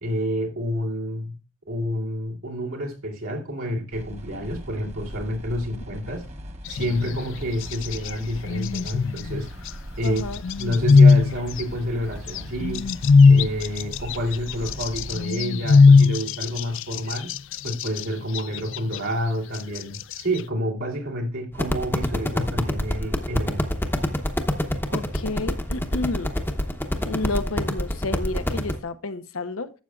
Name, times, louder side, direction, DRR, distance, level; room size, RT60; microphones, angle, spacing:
voice 1, 0.0-1.4 1.7-6.3 6.7-9.5 10.0-10.3 10.6-12.9 13.2-17.3 17.6-23.8, equal, 80° right, 2.9 m, -29 dB
sound 1, 3.9-15.3, equal, 35° right, 1.0 m, -39 dB
sound 2, 6.7-7.3 7.6-8.1 8.5-9.7 10.2-11.6 12.3-18.0 18.3-19.0 19.5-20.4, left 4 dB, 65° left, 0.4 m, -18 dB
voice 2, 10.0-10.4 24.9-26.3 27.1-29.7, left 2 dB, 85° left, 0.8 m, -30 dB
sound 3, 21.5-28.7, left 1 dB, 10° left, 0.9 m, -26 dB
12.0 x 7.5 x 2.4 m
head